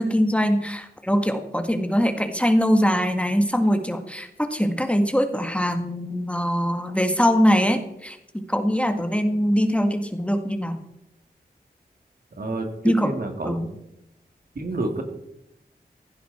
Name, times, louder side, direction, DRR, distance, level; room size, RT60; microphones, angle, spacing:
voice 1, 0.0-10.8 12.8-13.1 13.4-13.7, equal, 5° left, 6 dB, 1.7 m, -22 dB
voice 2, 12.4-12.7 13.0-13.7 14.5-15.0, right 2 dB, 65° right, 4 dB, 2.8 m, -29 dB
16.0 x 15.5 x 4.3 m, 0.84 s
wide cardioid pair, 90°, 17 cm